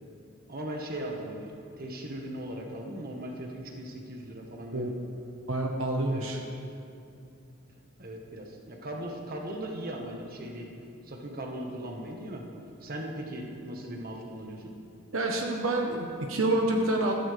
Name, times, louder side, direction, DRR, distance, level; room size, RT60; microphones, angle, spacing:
voice 1, 0.5-1.5 1.8-4.9 6.1-6.2 8.0-10.7 11.0-12.4 12.8-14.7, right 1 dB, 50° right, 1 dB, 1.5 m, -38 dB
voice 2, 5.5-6.4 15.1-17.1, right 2 dB, 80° right, 1 dB, 1.2 m, -28 dB
15.0 x 13.5 x 3.5 m, 2.6 s
head